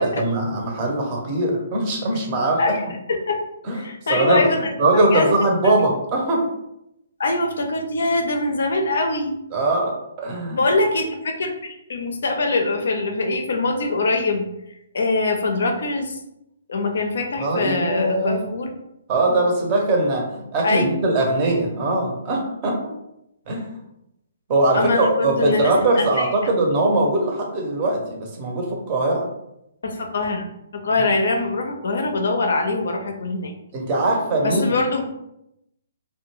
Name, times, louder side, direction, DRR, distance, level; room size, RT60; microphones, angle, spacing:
voice 1, 0.0-2.7 3.6-3.8 4.1-4.4 4.8-6.4 9.5-10.6 17.4-18.4 19.1-22.8 23.5-23.7 24.5-29.3 33.7-34.8, right 2 dB, 30° right, 0 dB, 0.6 m, -21 dB
voice 2, 3.7-4.6 5.1-5.3 7.2-9.3 10.5-14.5 14.9-16.2 16.7-18.7 20.6-20.8 24.7-26.3 29.8-30.5 30.7-33.5 34.4-35.0, left 3 dB, 60° left, 3 dB, 0.4 m, -23 dB
2.5 x 2.1 x 2.9 m, 0.83 s
figure-of-eight pair, 125°, 0 cm